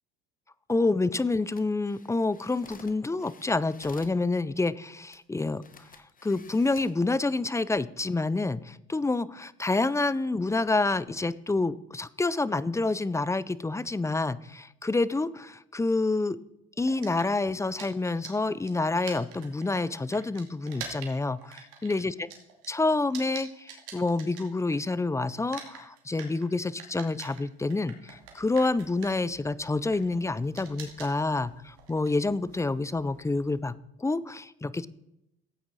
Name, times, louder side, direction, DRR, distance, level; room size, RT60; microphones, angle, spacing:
voice 1, 0.7-5.6 6.2-16.4 16.8-22.3 22.7-33.7 34.0-34.9, left 3 dB, 10° left, 18 dB, 0.5 m, -28 dB
sound 1, 1.4-4.2 5.1-5.2 5.6-7.0 7.6-7.8, left 5 dB, 25° left, 1.4 m, -52 dB
sound 2, 16.9-25.0 25.3-33.6, right 7 dB, 80° right, 2.6 m, -46 dB
14.5 x 8.7 x 4.1 m, 0.83 s
supercardioid pair, 80°, 32 cm